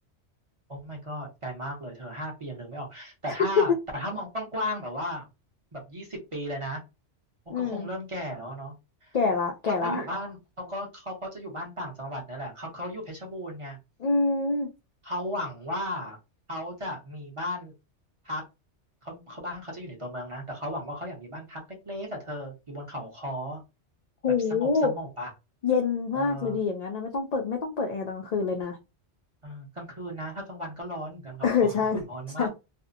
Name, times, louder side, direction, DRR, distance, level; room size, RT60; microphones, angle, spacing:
voice 1, 0.7-5.3 5.7-6.8 7.6-8.7 9.0-9.1 9.7-13.8 15.0-16.2 16.5-17.7 18.2-18.4 19.0-23.6 24.5-25.3 26.1-26.6 29.4-32.5, equal, 30° right, 0.8 m, -35 dB
voice 2, 7.5-7.9 9.1-10.0 14.0-14.7 24.2-24.9 25.6-28.8 31.4-32.0 32.4-32.5, left 4 dB, 70° left, 0.4 m, -26 dB
2.6 x 2.0 x 2.5 m
omnidirectional pair, 1.2 m